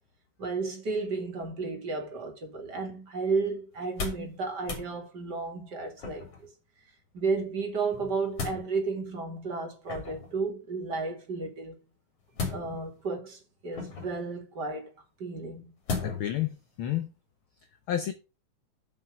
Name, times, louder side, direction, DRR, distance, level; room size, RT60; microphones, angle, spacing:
voice 1, 0.4-6.5 7.1-11.8 12.5-14.9 15.2-15.6, right 4 dB, 35° right, 2.7 m, -33 dB
sound 1, 3.8-4.3 4.6-4.9 6.0-6.5 7.9-8.6 9.8-10.3 12.3-13.0 13.7-14.2 15.9-16.3 16.8-16.9, left 4 dB, 55° left, 3.8 m, -35 dB
voice 2, 16.0-17.1 17.9-18.1, left 11 dB, 75° left, 1.2 m, -30 dB
7.4 x 5.8 x 6.4 m
omnidirectional pair, 3.3 m